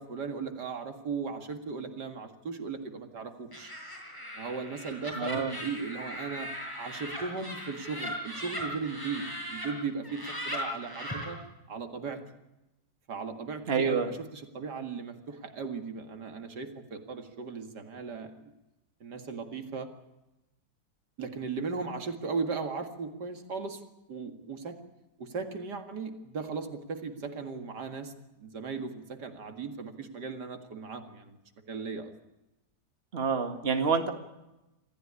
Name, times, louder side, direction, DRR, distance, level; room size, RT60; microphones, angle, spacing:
voice 1, 0.0-3.7 4.4-6.5 6.8-9.2 9.5-11.4 11.7-12.2 13.1-18.5 19.0-19.9 21.2-23.8 24.1-24.8 25.2-28.1 28.4-31.4 31.7-32.1, right 5 dB, 75° right, 6 dB, 2.6 m, -37 dB
Laughter, 3.5-9.7 10.0-11.3, equal, 10° left, 7.9 m, -39 dB
voice 2, 5.2-5.5 13.7-14.1 33.1-34.1, right 5 dB, 35° right, 6 dB, 2.0 m, -27 dB
26.0 x 15.0 x 9.8 m, 0.98 s
omnidirectional pair, 1.8 m